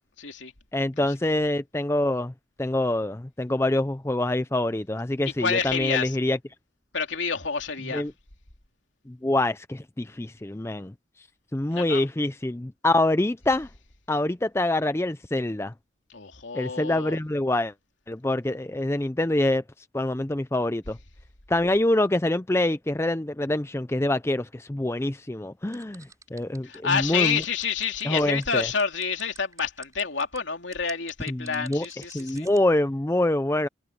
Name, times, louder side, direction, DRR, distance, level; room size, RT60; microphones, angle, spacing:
voice 1, 0.2-0.5 1.0-1.1 5.4-6.2 6.9-8.0 11.7-12.0 16.1-17.2 26.6-32.5, left 6 dB, 75° left, 2.8 m, -28 dB
voice 2, 0.7-2.3 2.6-6.4 7.9-8.1 9.1-10.9 11.5-13.7 14.1-15.7 16.5-17.7 18.1-19.6 19.9-21.0 21.5-27.4 28.0-28.7 31.3-31.9 32.1-33.7, left 1 dB, 15° left, 0.4 m, -25 dB
sound 1, 25.7-32.6, right 5 dB, 15° right, 5.9 m, -49 dB
head